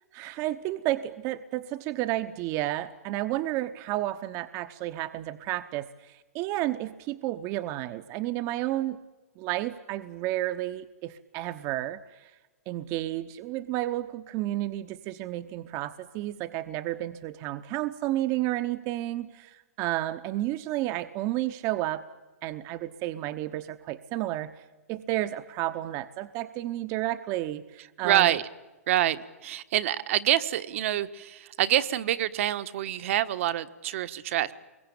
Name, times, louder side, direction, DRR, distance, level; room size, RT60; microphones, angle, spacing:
voice 1, 0.1-9.0 9.4-12.3 12.7-22.0 22.4-24.5 24.9-28.4, right 15 dB, 35° right, 12 dB, 1.0 m, -31 dB
voice 2, 28.0-28.4 28.9-34.5, right 12 dB, 55° right, 13 dB, 1.3 m, -26 dB
25.5 x 22.0 x 8.7 m, 1.2 s
hypercardioid pair, 130°, 8 cm